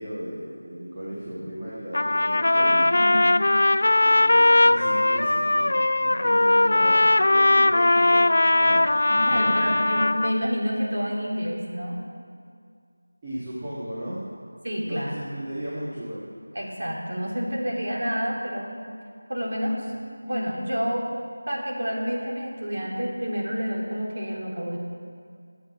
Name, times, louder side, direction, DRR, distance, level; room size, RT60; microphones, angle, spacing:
voice 1, 0.0-3.0 3.7-9.9 13.2-14.2 14.8-16.3, equal, 15° right, -10 dB, 1.8 m, -35 dB
Trumpet, 1.9-10.4, left 2 dB, 50° left, 0.4 m, -19 dB
voice 2, 2.8-3.3 9.1-12.0 14.6-15.1 16.5-18.7 19.3-19.9 20.2-21.1 21.5-24.8, equal, 50° right, -3 dB, 3.5 m, -29 dB
21.0 x 8.1 x 5.9 m, 2.2 s
figure-of-eight pair, 175°, 0 cm